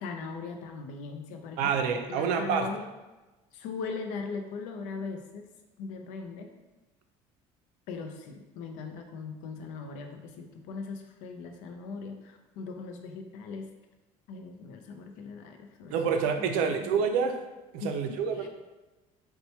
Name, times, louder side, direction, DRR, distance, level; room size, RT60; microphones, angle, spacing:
voice 1, 0.0-1.8 2.1-2.9 3.5-5.5 5.8-6.5 7.9-13.7 14.3-16.0 16.4-16.9 17.8-18.5, left 4 dB, 80° left, 4 dB, 0.4 m, -39 dB
voice 2, 1.6-2.7 15.9-17.4 17.7-18.5, right 6 dB, 85° right, 6 dB, 0.4 m, -27 dB
4.3 x 2.2 x 2.7 m, 1.1 s
cardioid pair, 130°, 13 cm